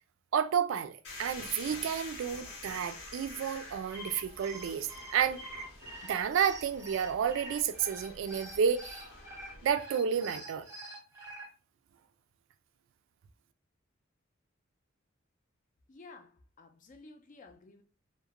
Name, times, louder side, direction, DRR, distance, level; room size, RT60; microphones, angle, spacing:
voice 1, 0.3-5.4 6.1-9.1 9.6-10.7, right 7 dB, 70° right, 0.3 m, -31 dB
sound 1, 1.0-9.7, left 3 dB, 85° left, 1.0 m, -48 dB
sound 2, 3.7-11.5, right 1 dB, 15° right, 0.7 m, -46 dB
voice 2, 15.9-17.8, left 3 dB, 40° left, 0.4 m, -53 dB
2.4 x 2.1 x 2.9 m
head